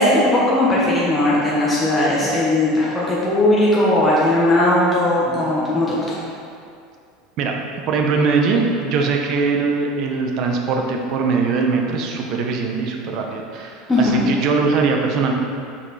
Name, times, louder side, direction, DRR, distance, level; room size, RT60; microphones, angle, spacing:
voice 1, 0.0-6.2 13.9-14.2, left 1 dB, 10° left, -8 dB, 1.1 m, -18 dB
voice 2, 7.9-15.3, right 4 dB, 50° right, 2 dB, 0.8 m, -21 dB
5.8 x 4.7 x 4.2 m, 2.4 s
supercardioid pair, 135°, 0 cm